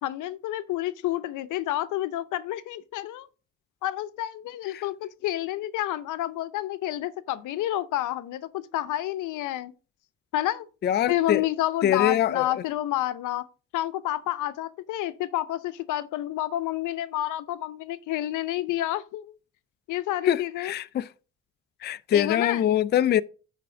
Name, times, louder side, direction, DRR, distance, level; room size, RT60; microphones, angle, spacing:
voice 1, 0.0-3.3 3.8-9.7 10.3-10.6 11.1-13.4 13.7-19.3 19.9-20.7 22.1-22.7, left 14 dB, 85° left, 0.7 m, -29 dB
voice 2, 10.8-11.4 11.8-12.5 20.2-21.1 21.8-23.2, left 10 dB, 35° left, 0.4 m, -24 dB
9.0 x 3.6 x 5.9 m
cardioid pair, 90°, 30 cm